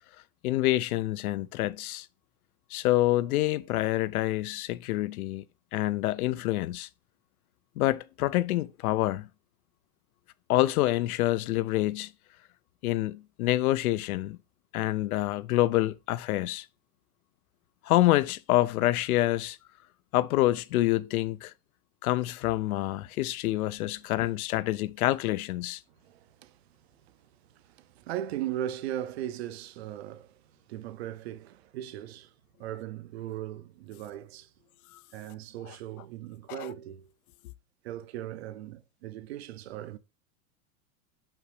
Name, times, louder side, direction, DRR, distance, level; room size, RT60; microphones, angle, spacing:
voice 1, 0.4-2.1 2.7-5.4 5.7-6.9 7.8-9.3 10.5-12.1 12.8-14.4 14.7-16.6 17.9-19.6 20.1-21.5 22.0-25.8 36.5-36.7, left 16 dB, 80° left, 0.6 m, -27 dB
voice 2, 26.0-26.6 27.1-27.2 27.5-30.4 30.7-32.3 32.6-34.5 35.1-37.1 37.8-40.0, right 12 dB, 50° right, 0.5 m, -38 dB
5.8 x 5.0 x 4.8 m
supercardioid pair, 180°, 43 cm